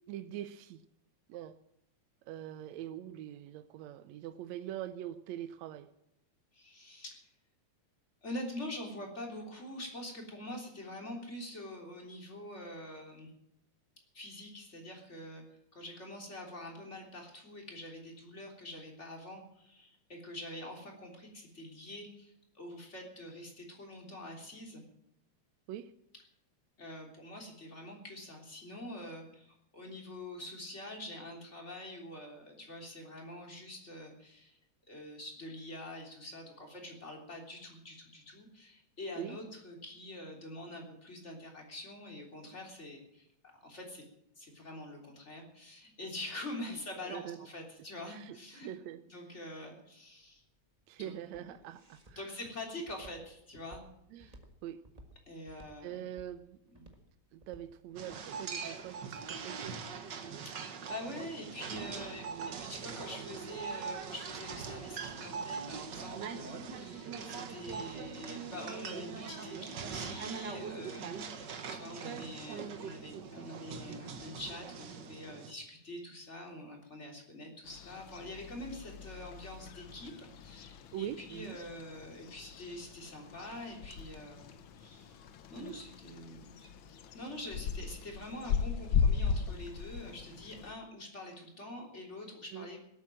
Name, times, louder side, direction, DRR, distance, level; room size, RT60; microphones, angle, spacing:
voice 1, 0.1-0.8 1.3-1.6 2.3-5.9 25.7-25.9 39.2-39.4 46.7-46.8 47.0-47.4 48.0-49.0 49.3-49.4 50.9-52.3 54.1-54.8 55.8-56.6 57.3-59.8 61.8-62.0 62.3-62.6 71.0-71.2 80.9-81.6 85.5-85.8 92.5-92.7, right 11 dB, 75° right, 10 dB, 1.9 m, -43 dB
voice 2, 6.5-7.3 8.2-13.3 14.1-15.4 15.7-24.8 26.8-34.6 34.9-43.3 43.6-44.0 44.4-48.7 49.1-50.4 51.0-51.5 52.2-53.8 54.1-54.3 55.3-56.1 56.7-56.8 60.4-84.5 84.8-85.2 85.5-86.7 87.1-92.8, left 1 dB, 20° left, 1 dB, 3.5 m, -45 dB
Walk footsteps, 50.3-58.2, right 1 dB, 20° right, 1.1 m, -57 dB
sound 1, 58.0-75.5, right 6 dB, 55° right, 1.3 m, -42 dB
sound 2, 77.6-90.7, left 6 dB, 70° left, 1.1 m, -38 dB
18.5 x 8.7 x 7.5 m, 0.80 s
omnidirectional pair, 3.3 m